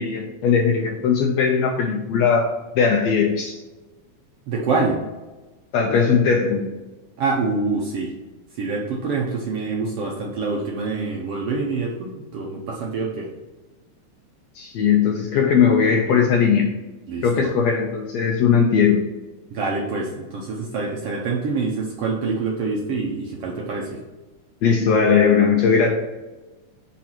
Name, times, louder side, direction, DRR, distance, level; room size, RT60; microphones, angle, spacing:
voice 1, 0.0-2.5 2.8-3.6 5.7-6.6 14.6-16.7 17.2-19.0 24.6-25.9, left 6 dB, 75° left, 2 dB, 1.6 m, -19 dB
voice 2, 4.5-5.0 7.2-8.1 8.6-13.3 17.1-17.3 19.5-24.0, right 4 dB, 70° right, -2 dB, 1.5 m, -25 dB
5.2 x 4.4 x 5.6 m, 1.1 s
omnidirectional pair, 3.6 m